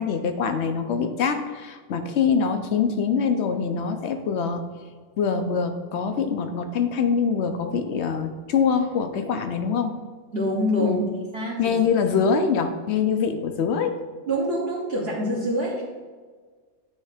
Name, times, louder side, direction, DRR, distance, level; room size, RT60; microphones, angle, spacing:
voice 1, 0.0-4.6 5.2-9.9 10.8-11.0 11.6-14.0, left 6 dB, 65° left, 7 dB, 0.9 m, -24 dB
voice 2, 10.3-11.0 11.3-11.8 14.3-15.8, equal, 55° right, -6 dB, 1.4 m, -25 dB
9.5 x 3.2 x 4.9 m, 1.5 s
omnidirectional pair, 1.3 m